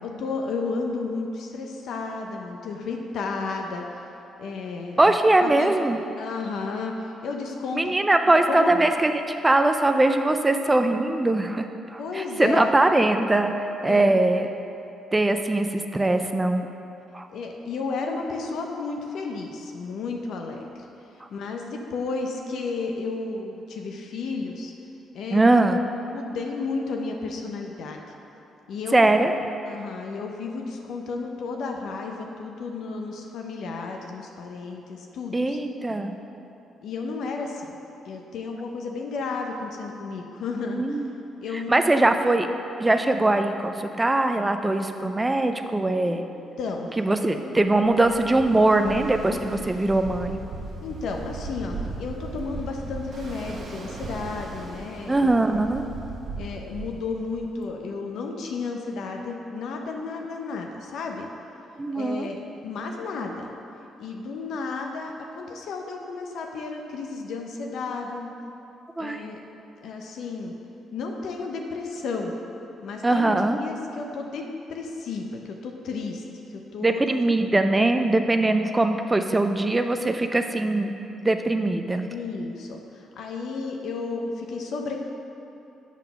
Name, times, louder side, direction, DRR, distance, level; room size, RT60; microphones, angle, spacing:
voice 1, 0.0-3.8 4.4-5.1 5.4-5.8 6.2-7.9 8.5-8.8 12.0-12.7 13.8-14.1 17.3-20.6 21.3-24.7 25.1-25.5 26.1-28.0 28.7-29.1 29.7-35.6 35.9-36.0 36.8-37.8 38.0-41.0 41.4-42.1 46.0-46.2 46.6-47.4 49.3-49.7 50.8-55.4 56.4-61.3 61.9-63.5 64.0-68.3 69.0-69.4 69.8-70.5 70.9-72.3 72.8-76.2 76.5-77.0 82.1-85.0, left 4 dB, 75° left, 2 dB, 0.6 m, -32 dB
voice 2, 5.0-6.0 7.7-13.5 13.8-14.5 15.1-16.7 17.1-17.3 21.2-21.3 25.3-25.8 28.9-29.3 35.3-36.1 40.7-41.1 41.7-42.5 42.8-46.2 47.0-50.4 55.1-55.8 61.8-62.3 69.0-69.2 73.0-73.6 76.8-80.9 81.2-82.1, right 2 dB, 15° right, 7 dB, 0.4 m, -21 dB
Ocean, 47.7-57.6, right 3 dB, 50° right, 0.9 m, -37 dB
7.2 x 3.9 x 5.6 m, 2.8 s
cardioid pair, 90°, 0 cm